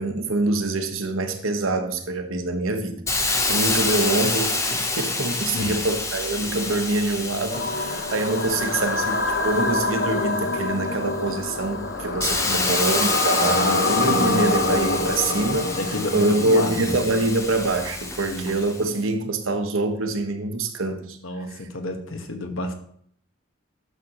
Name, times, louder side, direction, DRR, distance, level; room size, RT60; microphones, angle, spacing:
voice 1, 0.0-15.7 16.1-21.2, right 2 dB, 75° right, 6 dB, 1.0 m, -25 dB
Hiss, 3.1-10.6 11.1-18.9, left 3 dB, 15° left, 0.7 m, -28 dB
sound 1, 7.5-17.6, left 2 dB, 55° left, 0.7 m, -26 dB
voice 2, 12.4-12.8 13.5-14.8 15.7-17.0 18.2-18.5 21.2-22.7, left 1 dB, 70° left, 6 dB, 1.2 m, -30 dB
11.0 x 6.6 x 2.9 m, 0.65 s
head